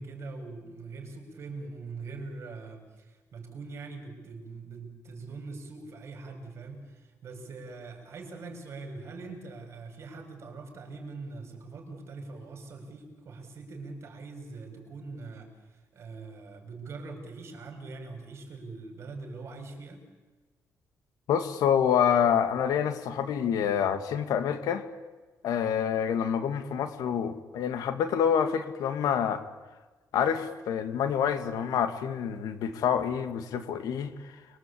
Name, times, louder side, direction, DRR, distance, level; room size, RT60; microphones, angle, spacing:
voice 1, 0.0-20.0, right 3 dB, 45° right, 4 dB, 6.6 m, -42 dB
voice 2, 21.3-24.8 25.4-29.4 30.1-34.1, left 8 dB, 85° left, 8 dB, 2.4 m, -27 dB
29.5 x 23.0 x 8.7 m, 1.2 s
cardioid pair, 155°, 6 cm